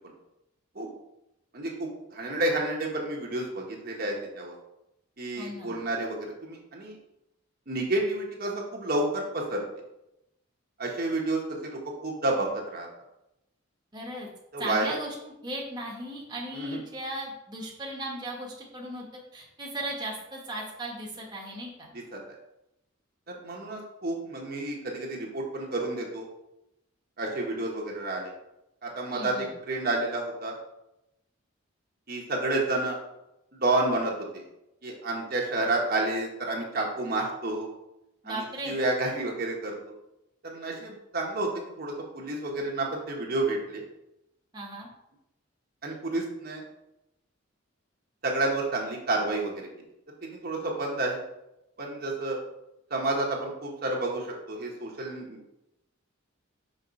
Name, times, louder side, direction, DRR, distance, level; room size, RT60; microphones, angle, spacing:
voice 1, 1.5-4.5 5.2-7.0 7.7-9.6 10.8-12.9 14.5-14.9 16.5-16.8 22.1-22.2 23.3-26.3 27.2-28.3 28.8-30.5 32.1-33.0 33.5-34.4 34.8-37.7 38.2-39.8 40.4-43.8 45.8-46.6 48.2-49.7 50.2-51.2 51.8-52.4 52.9-55.4, right 2 dB, 50° right, -1 dB, 1.1 m, -30 dB
voice 2, 5.4-5.8 13.9-14.3 14.6-19.1 19.3-21.9 29.1-29.5 38.2-38.8 44.5-44.9, right 1 dB, 20° right, -2 dB, 1.1 m, -37 dB
5.4 x 3.6 x 5.2 m, 0.88 s
head